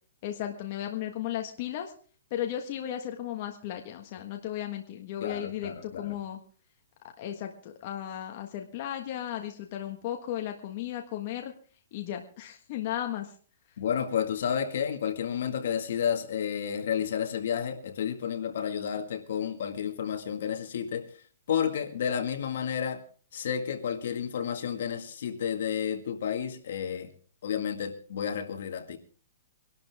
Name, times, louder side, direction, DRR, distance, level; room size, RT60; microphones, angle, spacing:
voice 1, 0.2-1.9 2.3-6.4 7.2-11.5 11.9-13.3, left 11 dB, 35° left, 1.5 m, -35 dB
voice 2, 5.2-6.2 13.8-21.1 21.5-23.0 23.3-27.1 27.4-29.0, left 8 dB, 60° left, 1.9 m, -31 dB
23.0 x 12.0 x 3.5 m
hypercardioid pair, 170°, 0 cm